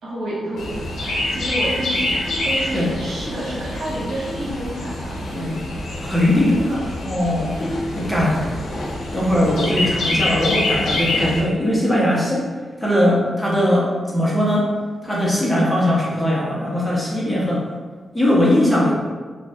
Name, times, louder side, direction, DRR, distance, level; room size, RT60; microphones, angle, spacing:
voice 1, 0.0-2.2 2.4-5.5, equal, 85° right, -6 dB, 1.1 m, -29 dB
Chirp tweet, 0.6-11.4, left 1 dB, 85° left, 0.6 m, -26 dB
voice 2, 6.0-7.5 7.9-8.6 9.1-12.5 12.8-14.7 15.0-17.6 18.1-18.9, left 1 dB, ahead, -6 dB, 0.9 m, -20 dB
2.6 x 2.4 x 3.4 m, 1.4 s
cardioid pair, 85°, 0 cm